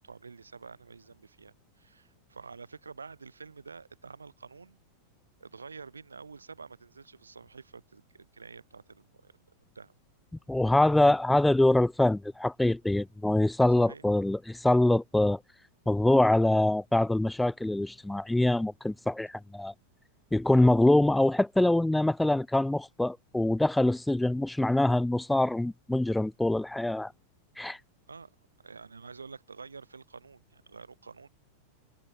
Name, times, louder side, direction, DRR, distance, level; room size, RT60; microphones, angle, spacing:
voice 1, 0.0-4.8 5.4-9.3 9.7-9.9 13.8-14.1 28.1-28.3 28.6-31.3, right 5 dB, 75° right, 6.6 m, -48 dB
voice 2, 10.5-15.4 15.9-19.7 20.3-27.1 27.6-27.8, left 1 dB, 5° left, 1.0 m, -24 dB
figure-of-eight pair, 90°, 0 cm